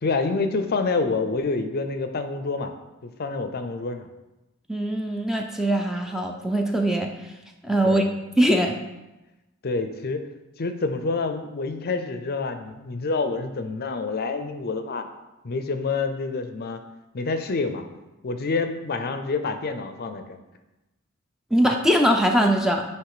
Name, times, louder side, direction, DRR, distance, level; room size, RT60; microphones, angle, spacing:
voice 1, 0.0-2.7 3.0-4.1 7.8-8.1 9.6-10.2 10.6-15.1 15.4-16.8 17.1-17.8 18.2-20.3, left 3 dB, 45° left, 8 dB, 0.5 m, -27 dB
voice 2, 4.7-7.1 7.6-8.0 8.4-8.8 21.5-22.8, right 1 dB, ahead, 2 dB, 0.4 m, -21 dB
9.2 x 3.1 x 4.9 m, 1.0 s
head